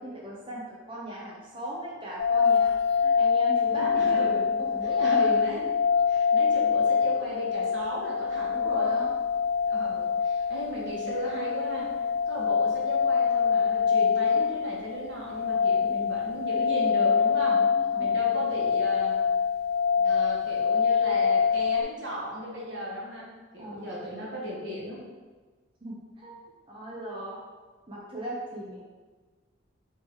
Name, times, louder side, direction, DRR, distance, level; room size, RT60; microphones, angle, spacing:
voice 1, 0.0-4.2 4.6-5.4 8.5-9.2 15.5-16.0 17.6-18.1 23.6-24.0 25.8-26.4 26.7-27.4 27.9-28.8, right 1 dB, 30° right, -5 dB, 0.6 m, -38 dB
sound 1, 2.2-21.8, left 6 dB, 55° left, 0.3 m, -25 dB
voice 2, 3.8-4.6 5.0-5.6 6.1-9.0 9.7-11.9 12.3-17.6 17.9-19.1 20.0-25.0, equal, 75° right, -5 dB, 1.4 m, -36 dB
3.6 x 2.8 x 4.6 m, 1.3 s
head